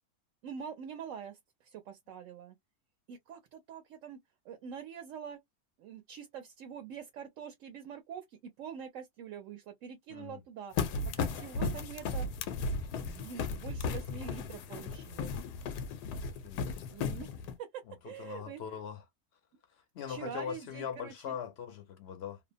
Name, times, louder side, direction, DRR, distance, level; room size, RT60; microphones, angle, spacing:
voice 1, 0.4-2.6 3.1-4.2 4.4-5.4 5.8-10.7 11.2-12.3 13.0-15.3 16.9-17.3 17.6-18.8 20.1-21.4, right 7 dB, 65° right, 0.9 m, -45 dB
voice 2, 10.1-10.4 16.4-16.9 17.9-19.0 19.7-22.4, left 8 dB, 60° left, 0.6 m, -41 dB
sound 1, 10.8-17.5, left 4 dB, 90° left, 1.2 m, -35 dB
2.8 x 2.0 x 2.5 m
omnidirectional pair, 1.7 m